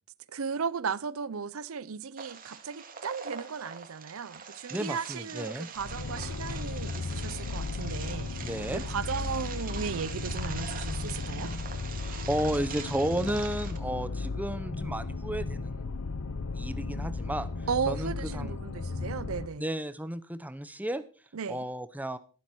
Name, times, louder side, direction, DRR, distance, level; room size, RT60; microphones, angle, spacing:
voice 1, 0.3-11.5 17.7-19.7 21.3-21.6, right 6 dB, 80° right, 0.6 m, -35 dB
sound 1, 2.2-13.8, right 6 dB, 40° right, 1.9 m, -43 dB
voice 2, 4.7-5.7 8.4-8.8 12.0-15.9 16.5-17.5 17.9-18.5 19.6-21.0 21.5-22.2, right 1 dB, 5° right, 0.7 m, -33 dB
sound 2, 5.8-19.5, left 3 dB, 75° left, 0.8 m, -35 dB
13.0 x 12.0 x 4.5 m
head